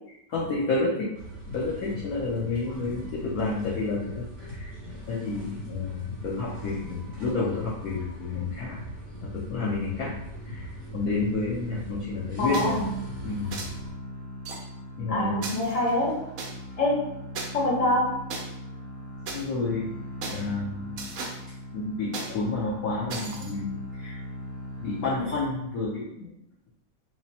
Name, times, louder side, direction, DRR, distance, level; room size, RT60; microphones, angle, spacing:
voice 1, 0.3-1.1 1.5-4.2 4.5-4.7 5.1-8.8 9.2-10.1 10.4-10.7 10.9-12.8 13.2-13.6 15.0-15.5 19.3-19.9 20.2-21.1 21.7-24.2 24.8-26.3, left 3 dB, 80° left, -5 dB, 0.8 m, -30 dB
sound 1, 1.1-13.9, equal, 45° right, 1.4 m, -40 dB
voice 2, 12.4-13.0 15.1-16.2 16.8-17.1 17.5-18.2, left 1 dB, 60° left, -6 dB, 0.3 m, -25 dB
sound 2, 12.4-25.8, equal, 60° right, 1.2 m, -40 dB
sound 3, 12.5-12.8 13.5-13.7 14.5-14.6 15.4-16.5 17.4-17.5 18.3-18.4 19.3-19.4 20.2-20.4 21.0-21.4 22.1-22.3 23.1-23.5, right 4 dB, 90° right, 0.7 m, -36 dB
3.3 x 3.0 x 2.8 m, 0.81 s
omnidirectional pair, 2.3 m